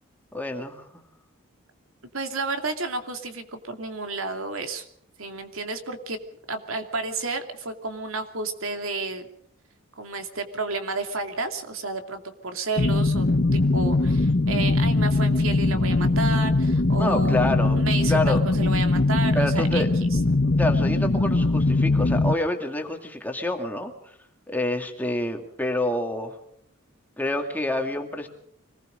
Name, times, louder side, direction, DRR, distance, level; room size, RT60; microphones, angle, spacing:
voice 1, 0.3-1.0 17.0-17.8 18.1-18.4 19.3-19.9 20.6-24.2 24.5-26.4 27.2-28.3, left 1 dB, 10° left, 3 dB, 2.3 m, -27 dB
voice 2, 2.1-4.9 5.2-6.2 6.5-9.3 10.0-13.3 13.5-19.8 20.1-20.2, right 3 dB, 75° right, 6 dB, 2.7 m, -31 dB
sound 1, 12.8-22.3, left 2 dB, 50° left, 0.9 m, -21 dB
25.5 x 20.0 x 5.2 m, 0.66 s
head